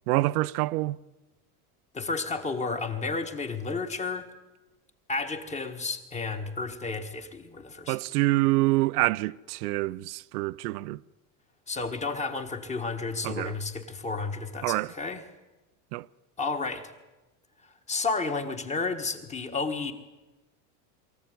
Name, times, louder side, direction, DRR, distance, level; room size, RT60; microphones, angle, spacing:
voice 1, 0.1-1.0 7.9-11.0 13.2-13.5 14.6-14.9 15.9-16.1, right 19 dB, 85° right, 0.7 m, -26 dB
voice 2, 1.9-4.3 5.1-8.0 11.7-15.2 16.4-16.9 17.9-19.9, left 4 dB, 15° left, 1.6 m, -32 dB
23.0 x 15.0 x 9.4 m
supercardioid pair, 160°, 45 cm